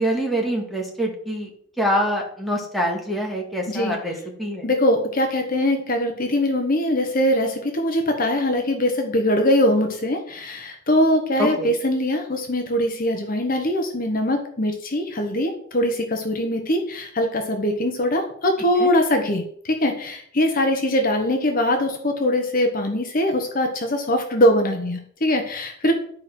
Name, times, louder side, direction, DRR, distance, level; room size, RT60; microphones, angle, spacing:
voice 1, 0.0-1.5 1.8-4.1 4.4-4.7 11.4-11.7 18.8-18.9, equal, ahead, -2 dB, 2.0 m, -25 dB
voice 2, 4.6-25.9, left 1 dB, 45° left, 4 dB, 1.1 m, -22 dB
11.5 x 4.6 x 6.0 m, 0.65 s
head